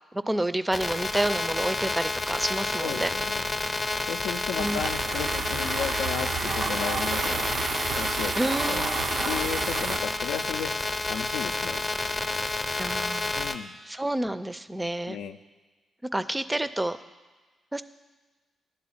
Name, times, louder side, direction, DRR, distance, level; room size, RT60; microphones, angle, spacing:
voice 1, 0.1-3.1 4.6-4.8 8.4-9.0 12.8-13.3 13.9-15.2 16.1-17.0 17.7-17.8, right 1 dB, 15° right, 12 dB, 0.4 m, -29 dB
sound 1, 0.7-13.5, left 2 dB, 40° left, 0.6 m, -30 dB
voice 2, 2.8-3.5 4.1-7.5 8.0-8.8 9.3-10.7 11.1-11.8 13.3-13.8 15.1-15.4, left 7 dB, 80° left, 7 dB, 0.4 m, -34 dB
sound 2, 4.6-10.0, right 5 dB, 70° right, 0.5 m, -31 dB
9.4 x 3.9 x 7.1 m, 1.3 s
hypercardioid pair, 40°, 0 cm